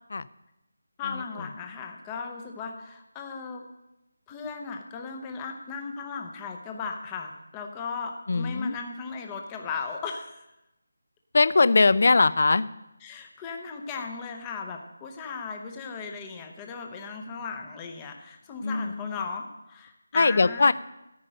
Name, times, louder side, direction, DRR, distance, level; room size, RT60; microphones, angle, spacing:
voice 1, 1.0-3.6 4.3-10.4 13.0-20.7, left 5 dB, 10° left, 4 dB, 0.7 m, -37 dB
voice 2, 8.3-8.8 11.3-12.7 18.6-19.2 20.1-20.7, left 3 dB, 35° left, 16 dB, 0.4 m, -21 dB
14.0 x 5.2 x 8.7 m, 0.93 s
figure-of-eight pair, 180°, 0 cm